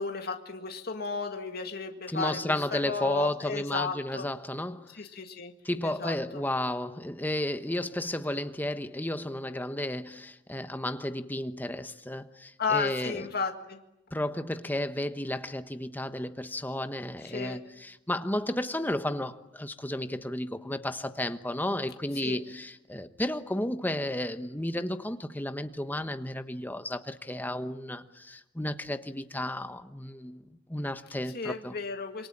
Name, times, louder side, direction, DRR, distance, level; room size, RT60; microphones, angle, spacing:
voice 1, 0.0-4.3 4.9-5.5 5.8-6.4 12.6-13.8 17.2-17.6 22.1-22.4 31.3-32.3, left 4 dB, 55° left, 2.0 m, -34 dB
voice 2, 2.1-5.0 5.6-13.3 14.1-30.4 30.7-31.7, left 1 dB, 10° left, 1.2 m, -33 dB
27.5 x 23.5 x 8.8 m
head